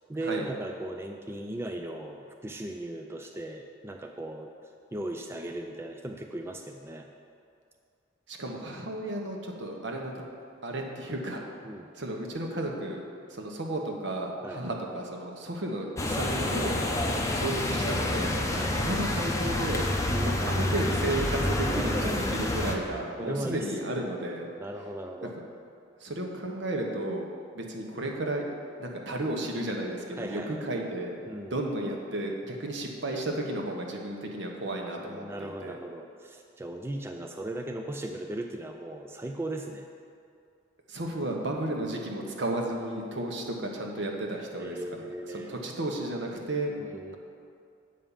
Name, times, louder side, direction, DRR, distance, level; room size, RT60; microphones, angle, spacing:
voice 1, 0.0-4.5 4.9-7.1 11.6-11.9 14.4-14.6 17.1-17.3 18.5-18.8 20.1-20.7 21.6-22.3 23.2-23.7 24.6-25.3 30.2-30.7 31.3-31.6 35.0-39.9 41.7-41.9 44.5-45.6 46.8-47.1, right 1 dB, 15° right, 3 dB, 0.4 m, -37 dB
voice 2, 8.3-10.2 10.6-11.4 12.0-13.0 13.3-16.8 17.3-18.3 18.7-24.5 26.0-27.3 27.5-28.4 28.8-31.2 31.5-35.8 40.9-46.8, right 1 dB, 65° right, 1 dB, 1.1 m, -33 dB
sound 1, 16.0-22.8, left 1 dB, 15° left, 0.7 m, -28 dB
8.6 x 5.3 x 7.1 m, 2.4 s
head